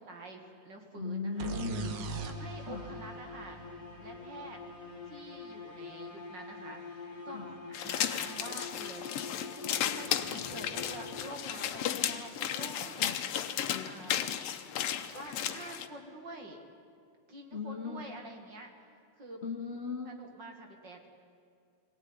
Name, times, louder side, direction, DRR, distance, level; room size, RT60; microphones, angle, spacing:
voice 1, 0.0-1.5 2.2-3.6 4.0-4.6 5.1-9.1 9.8-13.1 13.5-14.2 15.0-16.6 17.3-18.7 19.2-19.4 20.1-21.1, right 2 dB, 40° right, 3 dB, 2.3 m, -47 dB
voice 2, 0.9-2.0 2.6-2.9 7.3-7.6 13.0-13.2 17.5-18.0 19.4-20.1, left 5 dB, 45° left, 2 dB, 0.8 m, -38 dB
sound 1, 1.4-11.6, left 3 dB, 30° left, 2.9 m, -46 dB
sound 2, 1.4-5.1, right 5 dB, 80° right, 2.7 m, -41 dB
sound 3, 7.7-15.9, left 10 dB, 65° left, 1.7 m, -34 dB
22.5 x 17.0 x 9.6 m, 2.5 s
omnidirectional pair, 3.4 m